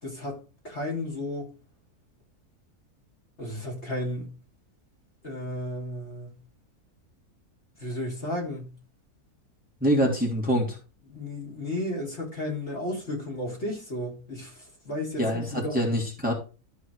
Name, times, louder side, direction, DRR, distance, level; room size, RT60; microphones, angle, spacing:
voice 1, 0.0-1.5 3.4-4.3 5.2-6.3 7.8-8.7 11.1-15.8, left 1 dB, 45° left, 3.7 m, -33 dB
voice 2, 9.8-10.8 15.2-16.3, equal, 5° right, 2.9 m, -25 dB
13.5 x 4.8 x 4.8 m
omnidirectional pair, 1.6 m